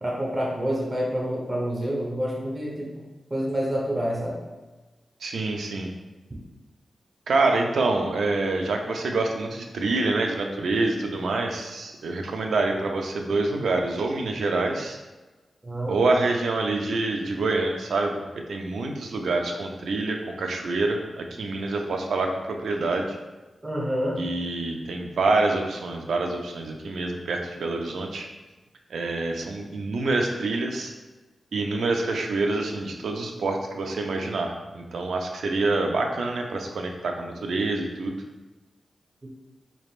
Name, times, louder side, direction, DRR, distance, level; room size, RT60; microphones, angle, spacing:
voice 1, 0.0-2.9 3.3-4.4 15.6-15.9 23.6-24.2, equal, 25° right, -4 dB, 0.9 m, -27 dB
voice 2, 5.2-5.9 7.3-15.0 15.9-23.2 24.2-28.3 28.9-30.9 31.5-38.2, right 3 dB, 85° right, 3 dB, 0.5 m, -26 dB
4.2 x 3.4 x 2.4 m, 1.2 s
cardioid pair, 70°, 0 cm